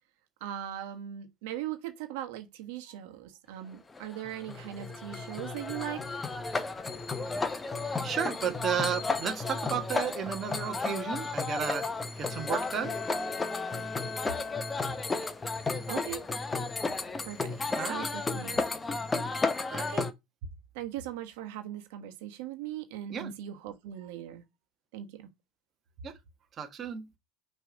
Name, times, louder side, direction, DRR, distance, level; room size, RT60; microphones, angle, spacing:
voice 1, 0.4-6.0 10.4-10.9 15.9-16.3 17.2-17.6 17.9-18.7 19.8-20.1 20.7-24.4 24.9-25.3, right 11 dB, 70° right, 1.3 m, -40 dB
sound 1, 4.0-20.1, left 3 dB, 15° left, 0.7 m, -33 dB
voice 2, 8.0-11.9 12.2-12.9 17.7-18.1 19.7-19.9 23.1-23.3 26.0-26.1 26.6-27.0, right 7 dB, 30° right, 1.2 m, -33 dB
Bowed string instrument, 12.1-15.5, left 5 dB, 40° left, 2.0 m, -41 dB
6.1 x 3.3 x 5.0 m
supercardioid pair, 120°, 0 cm